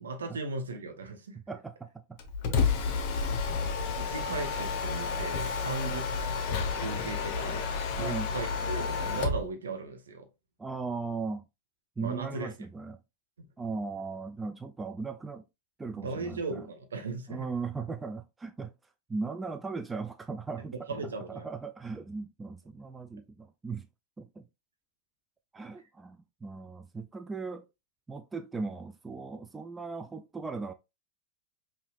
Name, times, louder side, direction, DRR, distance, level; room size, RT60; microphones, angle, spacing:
voice 1, 0.0-1.4 2.8-3.0 4.0-6.1 6.5-10.3 12.0-12.6 13.4-13.5 16.0-17.5 20.6-21.5 25.8-25.9, right 3 dB, 70° right, 0.9 m, -37 dB
voice 2, 1.5-1.9 3.5-3.6 5.7-6.0 8.0-8.3 10.6-11.4 12.0-13.0 13.6-15.4 15.8-16.4 17.3-18.7 19.1-20.7 21.3-23.9 24.2-24.4 25.5-27.7 28.1-30.7, right 4 dB, 10° right, 0.4 m, -37 dB
Mechanisms, 2.2-9.5, left 5 dB, 45° left, 0.8 m, -31 dB
5.5 x 2.7 x 2.5 m
figure-of-eight pair, 90°, 0 cm